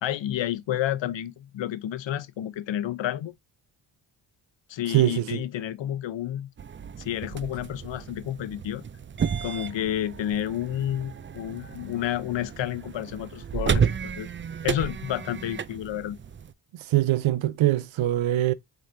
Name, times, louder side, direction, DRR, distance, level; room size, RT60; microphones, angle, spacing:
voice 1, 0.0-3.3 4.7-6.5 7.0-8.9 9.4-14.3 14.6-16.2, left 11 dB, 70° left, 0.7 m, -30 dB
voice 2, 4.9-5.4 16.9-18.5, right 14 dB, 75° right, 0.6 m, -23 dB
sound 1, 6.6-16.5, right 7 dB, 30° right, 0.4 m, -32 dB
4.2 x 4.0 x 2.6 m
cardioid pair, 70°, 47 cm